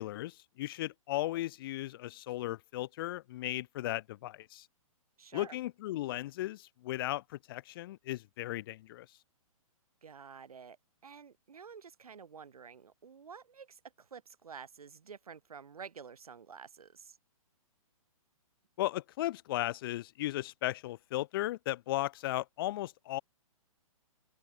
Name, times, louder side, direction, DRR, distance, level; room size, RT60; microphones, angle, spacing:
voice 1, 0.0-4.7 5.3-9.1 18.8-23.2, left 15 dB, 40° left, 0.6 m, -36 dB
voice 2, 5.2-5.6 10.0-10.8 11.0-17.2, right 6 dB, 85° right, 5.2 m, -50 dB
open air
hypercardioid pair, 150°, 18 cm